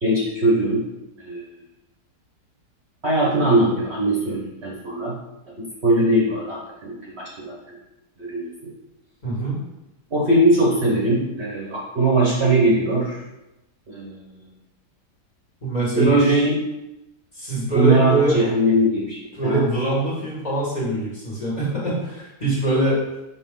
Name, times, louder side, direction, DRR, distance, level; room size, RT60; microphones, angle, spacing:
voice 1, 0.0-0.8 1.2-1.4 3.0-5.1 5.6-7.8 8.2-8.5 10.1-13.2 13.9-14.1 15.9-16.6 17.6-19.7, right 1 dB, 40° right, -4 dB, 1.3 m, -20 dB
voice 2, 9.2-9.6 15.6-16.4 17.3-18.4 19.3-23.0, right 1 dB, 25° left, -6 dB, 2.2 m, -23 dB
7.1 x 5.0 x 3.8 m, 0.92 s
omnidirectional pair, 1.8 m